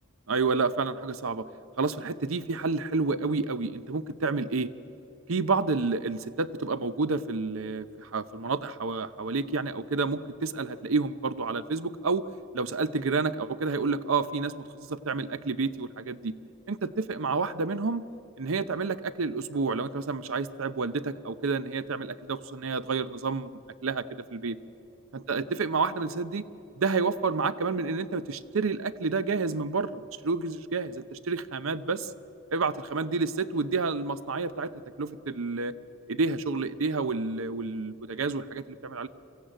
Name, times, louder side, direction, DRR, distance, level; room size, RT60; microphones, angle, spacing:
voice 1, 0.3-1.5 1.8-4.7 5.3-12.2 12.5-14.5 14.8-16.3 16.7-18.0 18.4-24.6 25.1-26.4 26.8-32.1 32.5-34.7 35.0-35.7 36.1-39.1, right 4 dB, 75° right, 15 dB, 0.7 m, -29 dB
23.0 x 15.0 x 9.0 m, 2.8 s
head